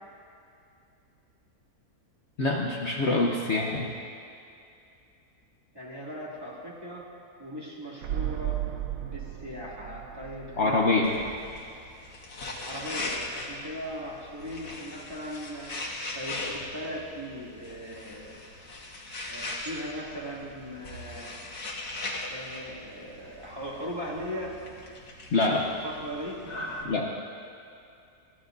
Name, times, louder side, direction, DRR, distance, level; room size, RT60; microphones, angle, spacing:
voice 1, 2.4-3.9 10.6-11.1 25.3-25.7 26.9-27.1, left 3 dB, 50° left, -1 dB, 1.1 m, -25 dB
voice 2, 5.7-7.1 7.4-8.6 9.0-11.5 12.6-15.7 16.1-18.4 19.3-21.3 22.3-24.6 25.8-26.9, equal, 15° right, -6 dB, 2.4 m, -38 dB
sound 1, 8.0-11.8 12.0-12.1, right 13 dB, 85° right, 1.3 m, -35 dB
sound 2, 11.0-26.8, left 2 dB, 75° left, 2.1 m, -40 dB
22.5 x 16.0 x 2.7 m, 2.5 s
omnidirectional pair, 1.6 m